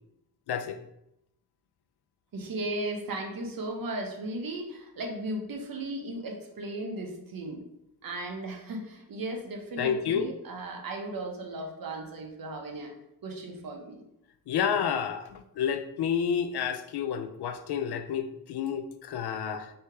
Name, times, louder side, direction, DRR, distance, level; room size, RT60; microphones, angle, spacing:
voice 1, 2.3-7.6 8.0-12.9 13.2-14.0, right 1 dB, 60° right, 2 dB, 0.9 m, -36 dB
voice 2, 9.8-10.3 14.5-19.7, left 7 dB, 75° left, 9 dB, 0.5 m, -30 dB
3.3 x 2.8 x 4.6 m, 0.82 s
wide cardioid pair, 110°, 39 cm